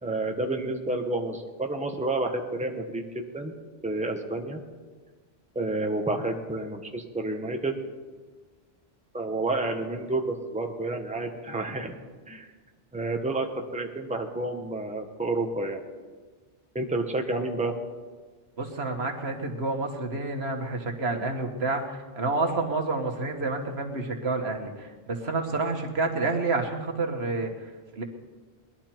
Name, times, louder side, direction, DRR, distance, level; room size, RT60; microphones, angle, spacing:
voice 1, 0.0-3.5 3.8-4.6 5.5-7.8 9.1-12.0 12.3-12.5 12.9-13.5 13.7-15.8 16.7-17.7, right 2 dB, 5° right, 3 dB, 1.1 m, -30 dB
voice 2, 18.6-28.0, right 3 dB, 70° right, 3 dB, 1.7 m, -29 dB
20.5 x 11.5 x 4.5 m, 1.4 s
omnidirectional pair, 1.1 m